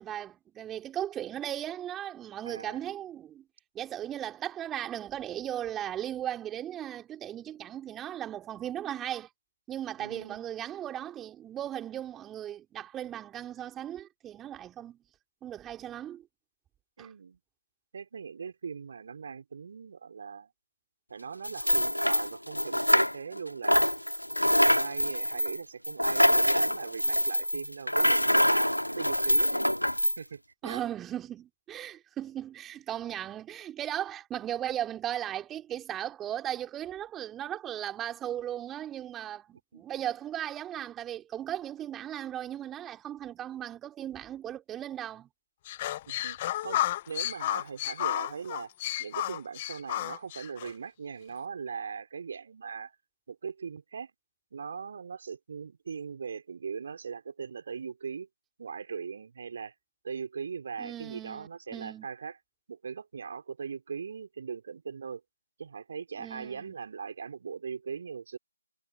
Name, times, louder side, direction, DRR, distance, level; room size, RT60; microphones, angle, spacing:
voice 1, 0.0-3.4 3.7-9.3 9.7-15.0 15.4-16.3 17.0-17.1 30.6-45.3 60.8-62.1 66.2-66.7, right 11 dB, 5° right, 3.7 m, -37 dB
voice 2, 2.4-2.8 10.0-10.4 17.0-17.4 17.9-20.5 21.1-23.9 24.5-28.7 28.9-29.7 30.2-30.8 39.7-39.8 46.1-46.4 46.6-48.7 49.0-52.9 53.3-54.1 54.5-58.3 58.6-59.8 60.0-62.4 62.7-65.2 65.6-68.4, right 6 dB, 25° right, 5.9 m, -40 dB
sound 1, 21.4-23.4 23.6-30.2, equal, 80° left, 4.1 m, -25 dB
sound 2, 45.6-50.7, left 14 dB, 15° left, 1.7 m, -32 dB
figure-of-eight pair, 160°, 0 cm